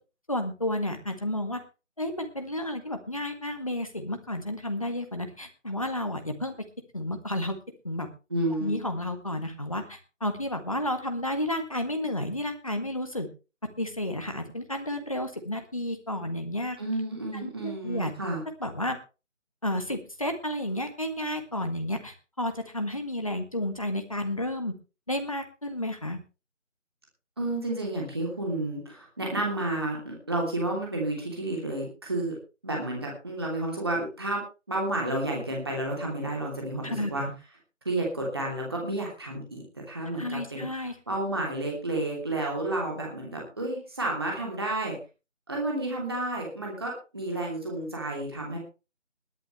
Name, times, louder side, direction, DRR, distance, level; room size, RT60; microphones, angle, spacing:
voice 1, 0.3-1.6 2.0-6.5 6.9-7.6 7.8-8.1 8.6-13.3 13.8-16.8 17.4-18.1 18.6-19.0 19.6-24.7 25.1-26.2 36.8-37.3 40.2-40.9, left 1 dB, 25° left, 6 dB, 1.7 m, -31 dB
voice 2, 8.3-8.7 16.8-18.4 27.4-32.4 32.6-37.2 37.8-45.0 45.5-48.6, right 2 dB, 20° right, -1 dB, 3.0 m, -31 dB
21.0 x 10.5 x 3.2 m, 0.31 s
figure-of-eight pair, 175°, 38 cm